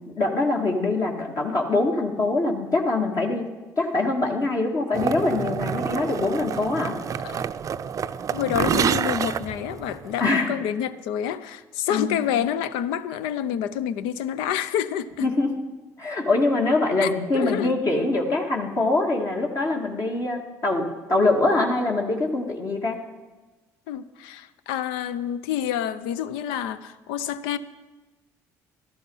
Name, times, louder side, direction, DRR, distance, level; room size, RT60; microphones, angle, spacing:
voice 1, 0.0-3.5 3.8-7.0 10.2-10.5 11.9-12.2 15.2-15.6 16.0-23.0, left 2 dB, 45° left, 2.0 m, -24 dB
sound 1, 4.9-10.3, right 7 dB, 40° right, 0.5 m, -28 dB
voice 2, 8.3-15.3 17.0-17.8 23.9-27.6, left 9 dB, 80° left, 0.6 m, -28 dB
13.5 x 11.5 x 5.5 m
supercardioid pair, 70°, 8 cm